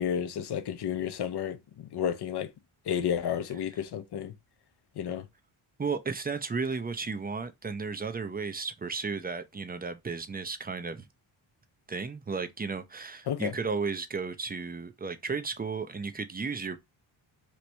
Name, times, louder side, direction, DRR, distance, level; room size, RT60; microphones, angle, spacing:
voice 1, 0.0-2.5 2.9-4.3 5.0-5.3 13.3-13.5, left 9 dB, 50° left, 0.7 m, -31 dB
voice 2, 5.8-11.0 11.9-16.8, right 4 dB, 20° right, 0.5 m, -34 dB
3.1 x 2.5 x 3.1 m
supercardioid pair, 55°, 50 cm